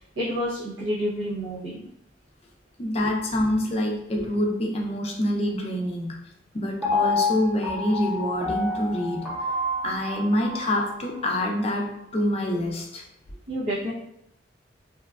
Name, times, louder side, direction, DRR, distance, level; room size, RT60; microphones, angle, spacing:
voice 1, 0.2-1.8 13.5-13.9, equal, 85° right, -8 dB, 0.7 m, -29 dB
voice 2, 2.8-6.2 6.5-9.3 9.8-13.0, left 1 dB, 30° left, 1 dB, 0.4 m, -26 dB
Piano, 6.8-10.9 11.4-11.5, left 2 dB, 5° right, 0.7 m, -28 dB
2.9 x 2.2 x 2.3 m, 0.79 s
head